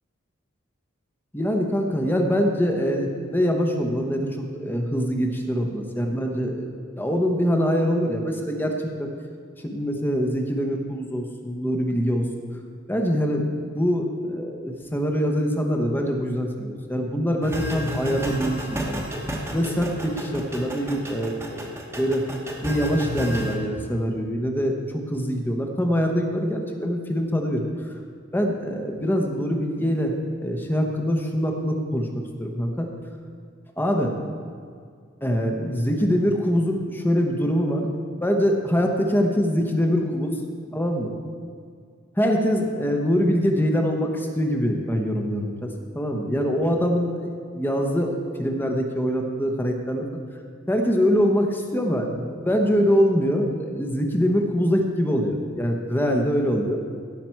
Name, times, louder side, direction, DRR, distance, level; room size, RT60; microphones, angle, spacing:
voice 1, 1.3-6.7 7.0-9.1 9.6-12.2 12.9-19.1 19.5-21.6 22.0-22.3 22.6-24.8 25.1-27.7 28.3-32.9 33.8-34.1 35.2-37.9 38.2-40.4 40.7-41.1 42.2-50.1 50.7-56.8, equal, 10° left, 2 dB, 1.0 m, -24 dB
sound 1, 17.4-23.5, equal, 15° right, 1.2 m, -32 dB
16.5 x 6.0 x 4.5 m, 2.1 s
head